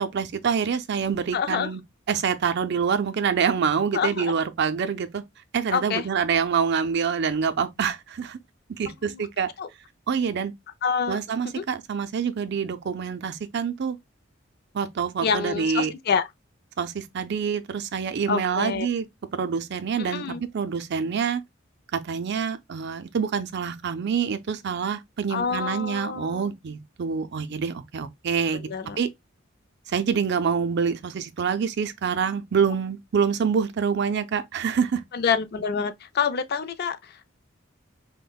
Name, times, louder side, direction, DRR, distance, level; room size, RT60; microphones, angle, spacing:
voice 1, 0.0-1.8 2.1-5.2 5.5-8.4 8.8-9.5 10.1-10.5 11.1-14.0 14.7-15.9 16.8-19.1 19.3-21.4 21.9-28.7 29.0-29.1 29.9-35.0, right 6 dB, 55° right, 0.4 m, -26 dB
voice 2, 1.3-1.7 3.9-4.3 5.7-6.1 8.9-9.3 9.6-9.7 10.8-11.2 11.4-11.6 15.2-16.3 18.3-18.9 20.0-20.4 25.3-26.5 28.6-29.0 35.1-37.3, left 6 dB, 50° left, 0.4 m, -27 dB
5.2 x 2.1 x 2.3 m
head